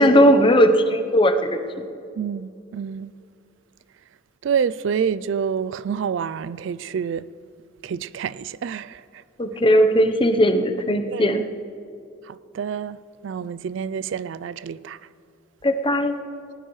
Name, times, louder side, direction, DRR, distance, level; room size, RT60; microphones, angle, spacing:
voice 1, 0.0-1.3 9.4-11.4 15.6-16.2, equal, 25° left, 0.8 m, -17 dB
voice 2, 2.2-3.1 4.4-7.3 7.8-9.0 11.1-11.4 12.3-13.0 13.2-15.0, right 7 dB, 65° right, 0.3 m, -27 dB
19.0 x 17.5 x 3.2 m
head